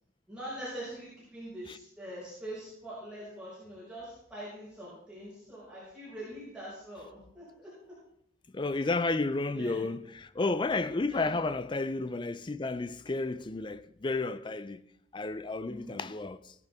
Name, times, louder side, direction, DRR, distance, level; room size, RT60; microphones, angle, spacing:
voice 1, 0.3-7.4 8.7-8.8 9.5-9.9 11.1-11.4 15.7-16.0, right 1 dB, 5° right, 5.3 m, -43 dB
voice 2, 8.5-14.8 15.1-16.5, left 3 dB, 25° left, 0.4 m, -32 dB
17.0 x 10.5 x 3.5 m
head